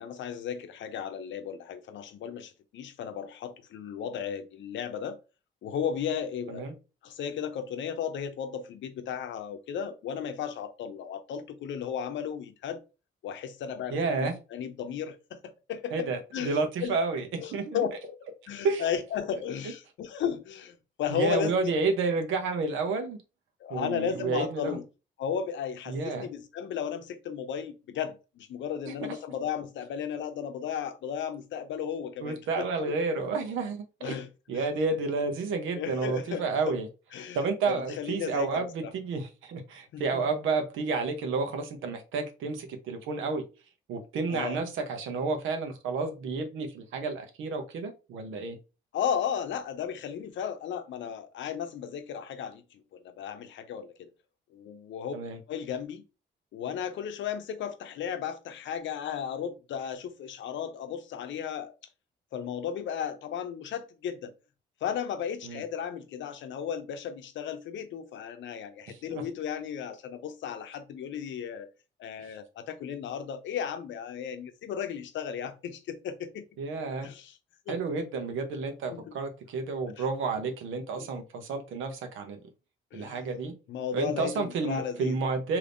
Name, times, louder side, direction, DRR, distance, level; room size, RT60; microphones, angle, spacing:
voice 1, 0.0-5.2 5.6-6.6 7.0-12.8 13.2-16.1 16.3-17.0 17.4-18.2 18.5-21.7 23.6-24.8 25.2-32.9 34.0-34.7 35.7-36.7 37.1-37.4 37.7-38.9 39.9-40.2 44.3-44.6 48.9-54.1 54.5-55.1 55.5-56.0 56.5-61.7 62.3-64.3 64.8-71.7 72.0-76.4 77.0-77.3 77.7-77.8 78.9-79.1 80.0-80.1 81.0-81.1 82.9-83.2 83.7-85.2, left 8 dB, 70° left, 0.7 m, -35 dB
voice 2, 13.9-14.3 15.9-17.8 18.6-18.8 21.1-23.2 23.7-24.8 25.9-26.3 28.9-29.0 32.2-34.2 34.5-36.9 37.3-43.4 43.9-48.6 55.1-55.4 65.4-65.6 68.9-69.2 72.2-72.3 76.6-77.1 77.7-82.4 82.9-83.5 83.9-85.6, right 4 dB, 85° right, 0.8 m, -30 dB
3.4 x 2.7 x 2.5 m
cardioid pair, 90°, 20 cm